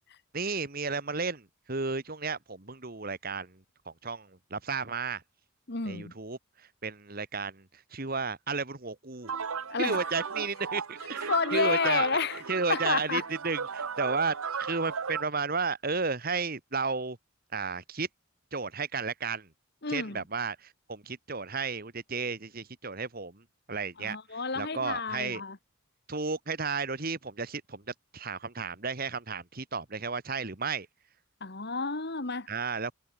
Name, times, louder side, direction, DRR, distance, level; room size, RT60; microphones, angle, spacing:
voice 1, 0.3-3.5 4.0-5.2 5.8-6.4 6.8-7.6 7.9-9.3 9.8-12.2 12.5-17.2 17.5-18.1 18.5-19.5 19.9-20.6 20.9-23.4 23.7-24.2 24.5-25.4 26.1-27.8 28.1-30.9 32.5-32.9, right 4 dB, 45° right, 1.7 m, -33 dB
voice 2, 5.7-6.1 9.7-10.0 11.3-12.4 12.7-13.2 19.8-20.2 24.0-25.6 31.4-32.5, left 4 dB, 50° left, 1.6 m, -30 dB
sound 1, 9.2-15.2, right 6 dB, 85° right, 1.0 m, -36 dB
head